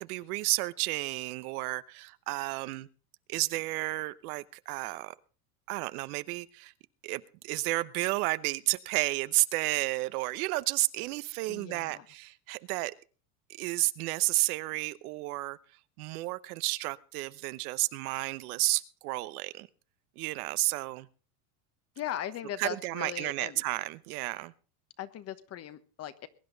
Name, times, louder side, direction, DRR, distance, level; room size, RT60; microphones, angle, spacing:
voice 1, 0.0-2.9 3.3-5.1 5.7-6.7 7.0-12.9 13.5-15.6 16.0-19.7 20.2-21.1 22.6-24.5, right 20 dB, 70° right, 1.0 m, -32 dB
voice 2, 11.5-12.1 22.0-23.6 25.0-26.3, left 11 dB, 30° left, 1.2 m, -39 dB
22.0 x 10.5 x 4.0 m
supercardioid pair, 140°, 46 cm